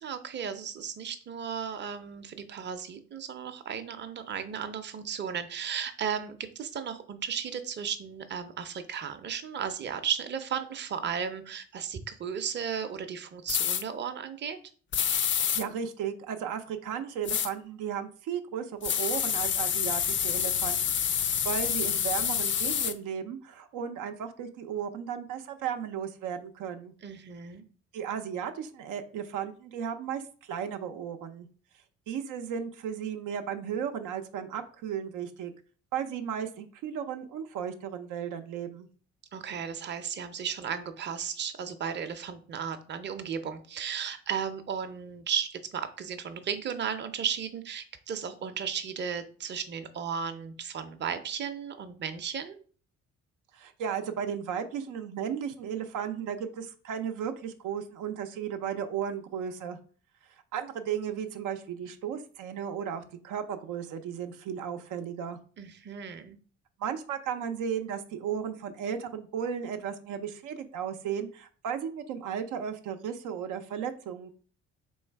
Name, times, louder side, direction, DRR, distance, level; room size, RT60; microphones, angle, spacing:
voice 1, 0.0-14.6 27.0-27.7 39.3-52.6 65.6-66.4, right 7 dB, 35° right, 8 dB, 0.6 m, -35 dB
sound 1, 13.5-13.8 14.9-15.6 17.3-17.5 18.8-22.9, left 8 dB, 40° left, 0.4 m, -28 dB
voice 2, 15.4-26.9 27.9-31.5 32.1-35.5 35.9-38.9 53.5-59.8 60.5-65.4 66.8-74.3, right 8 dB, 85° right, 6 dB, 0.6 m, -35 dB
3.1 x 3.1 x 4.5 m, 0.41 s
cardioid pair, 90°, 30 cm